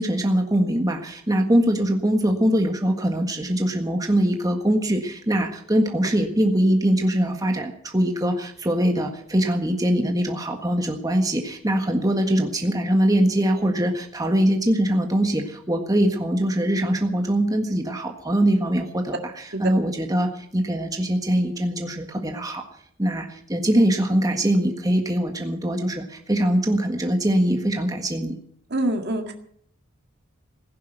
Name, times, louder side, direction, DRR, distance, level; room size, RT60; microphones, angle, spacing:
voice 1, 0.0-19.2 19.6-22.6 23.0-28.4, right 1 dB, 15° right, 3 dB, 1.6 m, -22 dB
voice 2, 28.7-29.3, right 1 dB, 50° right, 4 dB, 2.0 m, -25 dB
16.0 x 10.5 x 8.0 m, 0.64 s
head